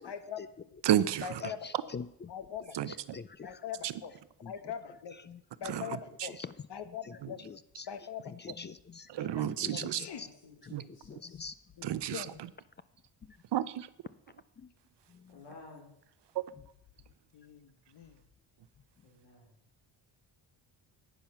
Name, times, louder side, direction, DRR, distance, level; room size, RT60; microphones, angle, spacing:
voice 1, 0.0-0.4 1.2-1.9 2.3-3.0 3.4-4.1 4.4-5.2 5.6-6.4 6.7-7.4 7.9-8.6 9.2-10.2 11.8-12.3 17.3-18.2, left 8 dB, 55° left, 11 dB, 1.2 m, -42 dB
voice 2, 0.8-1.2 2.8-2.9 5.7-5.8 9.1-10.0 10.7-10.8 11.8-12.2 13.5-13.9 16.4-16.5, right 11 dB, 60° right, 16 dB, 0.7 m, -30 dB
voice 3, 1.9-2.3 3.1-3.5 4.4-4.5 7.5-7.9 8.6-9.1 9.4-10.1 10.7-10.8 11.1-11.5, left 5 dB, 25° left, 15 dB, 0.3 m, -43 dB
voice 4, 10.1-11.5 15.3-15.9 19.0-19.5, left 3 dB, 85° left, -1 dB, 4.5 m, -54 dB
10.5 x 9.0 x 5.6 m, 0.75 s
cardioid pair, 110°, 49 cm